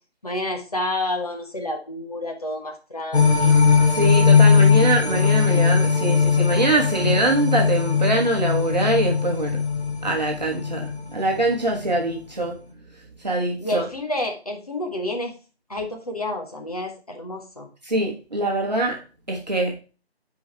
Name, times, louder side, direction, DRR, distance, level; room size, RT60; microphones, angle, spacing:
voice 1, 0.2-3.5 13.6-15.3 15.7-17.7, left 1 dB, 35° left, 2 dB, 1.3 m, -29 dB
sound 1, 3.1-11.5 11.9-12.0, left 5 dB, 80° left, 2.3 m, -19 dB
voice 2, 3.9-9.6 10.0-12.6 13.2-13.9 17.9-19.0 19.3-19.7, right 2 dB, 40° right, 0 dB, 1.3 m, -23 dB
7.5 x 4.8 x 4.8 m, 0.34 s
figure-of-eight pair, 165°, 32 cm